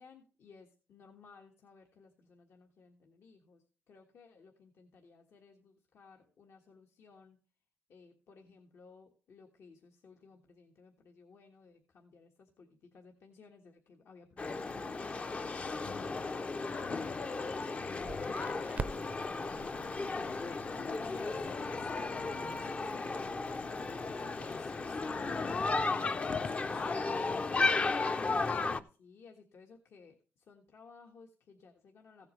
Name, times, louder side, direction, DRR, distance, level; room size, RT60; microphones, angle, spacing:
voice 1, 0.0-7.4 7.9-16.8 17.6-20.3 28.1-32.3, left 4 dB, 70° left, 1 dB, 1.5 m, -59 dB
sound 1, 14.4-28.8, left 3 dB, 30° left, 0.5 m, -34 dB
Crackle, 18.0-24.5, right 5 dB, 35° right, 0.5 m, -47 dB
voice 2, 20.5-28.0, left 4 dB, 90° left, 2 dB, 2.4 m, -57 dB
16.0 x 8.2 x 3.2 m, 0.37 s
wide cardioid pair, 155°, 4 cm